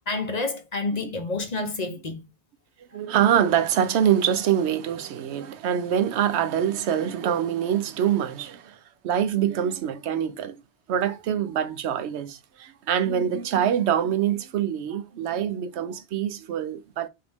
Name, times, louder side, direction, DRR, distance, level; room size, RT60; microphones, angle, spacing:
voice 1, 0.1-2.2, left 3 dB, 45° left, 0.8 m, -29 dB
voice 2, 2.9-10.6 10.9-17.1, right 9 dB, 90° right, 0.9 m, -25 dB
4.9 x 2.8 x 3.4 m
omnidirectional pair, 1.1 m